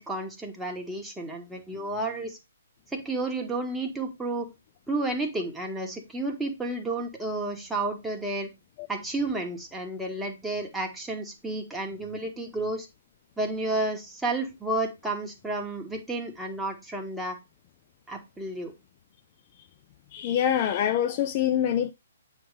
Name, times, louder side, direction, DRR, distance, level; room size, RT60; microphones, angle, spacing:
voice 1, 0.0-2.4 2.9-4.5 4.9-8.5 8.9-12.9 13.4-17.4 18.1-18.7, right 2 dB, 5° right, 1.4 m, -31 dB
voice 2, 20.1-21.9, left 10 dB, 35° left, 0.4 m, -25 dB
8.4 x 3.2 x 5.0 m
figure-of-eight pair, 130°, 0 cm